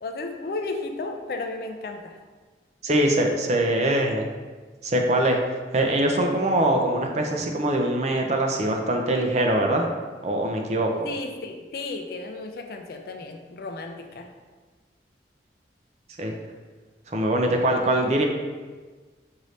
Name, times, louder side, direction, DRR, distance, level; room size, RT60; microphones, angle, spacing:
voice 1, 0.0-2.2 11.0-14.3, left 3 dB, 55° left, 5 dB, 0.4 m, -34 dB
voice 2, 2.8-4.3 4.8-5.4 5.7-9.9 10.2-11.1 16.2-16.4 17.1-18.2, right 1 dB, 40° right, 2 dB, 0.5 m, -23 dB
6.4 x 2.7 x 3.1 m, 1.4 s
head